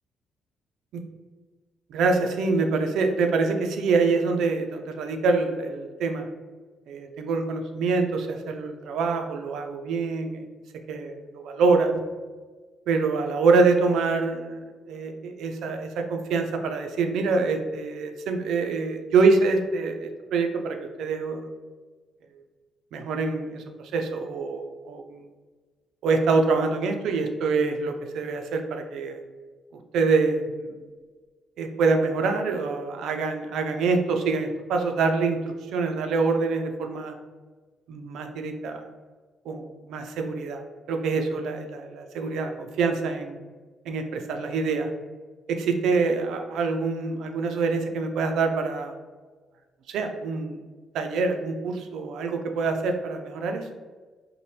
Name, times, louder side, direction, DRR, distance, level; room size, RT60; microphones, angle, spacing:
voice 1, 1.9-6.3 6.9-10.4 10.9-12.0 12.9-21.5 22.9-25.2 26.0-29.2 29.9-30.8 31.6-35.4 35.7-37.1 37.9-38.9 39.5-40.6 40.9-43.4 43.9-44.9 45.5-48.9 49.9-50.6 50.9-53.7, right 4 dB, 80° right, 5 dB, 0.3 m, -25 dB
2.7 x 2.1 x 3.2 m, 1.4 s
cardioid pair, 90°, 0 cm